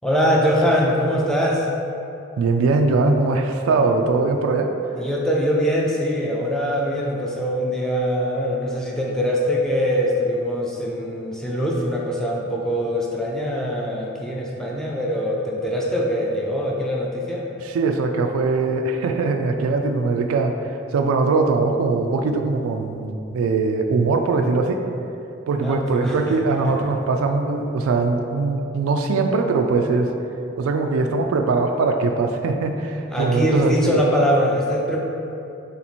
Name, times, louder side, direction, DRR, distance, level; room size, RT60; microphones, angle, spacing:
voice 1, 0.0-1.7 5.0-17.5 25.6-26.4 33.1-35.0, equal, 5° left, -3 dB, 0.3 m, -22 dB
voice 2, 2.4-4.7 17.6-20.5 20.9-24.8 25.5-30.1 30.6-34.0, right 3 dB, 90° right, 5 dB, 0.3 m, -21 dB
3.4 x 2.9 x 4.1 m, 2.8 s
head